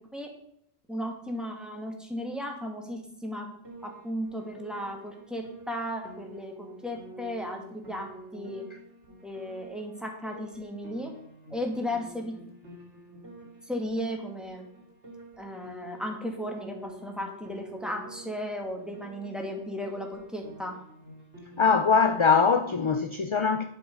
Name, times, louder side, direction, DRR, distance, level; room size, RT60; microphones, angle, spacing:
voice 1, 0.9-3.5 3.8-8.7 9.2-11.1 11.5-12.4 13.7-14.7 15.4-20.8, equal, ahead, 2.2 m, -35 dB
Piano, 3.6-22.8, right 1 dB, 80° right, 3.4 m, -49 dB
voice 2, 21.6-23.6, left 5 dB, 35° left, 0.6 m, -22 dB
10.5 x 7.9 x 5.5 m
omnidirectional pair, 1.2 m